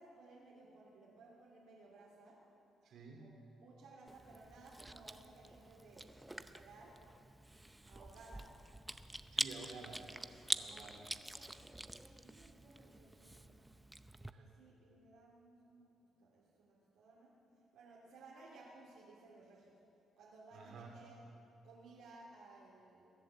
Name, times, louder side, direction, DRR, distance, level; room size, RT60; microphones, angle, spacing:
voice 1, 0.0-2.4 3.2-7.0 7.9-8.5 10.7-11.6 12.2-13.4 14.3-17.3 17.7-19.8 20.2-21.2 21.6-23.1, right 3 dB, 90° right, -7 dB, 2.9 m, -59 dB
voice 2, 2.8-3.2 9.3-11.1 14.3-14.5 20.5-21.0, right 3 dB, 70° right, 1 dB, 3.1 m, -52 dB
Chewing mastication, 4.1-14.3, right 1 dB, 10° right, 0.6 m, -46 dB
21.5 x 7.8 x 7.7 m, 2.8 s
cardioid pair, 90°, 0 cm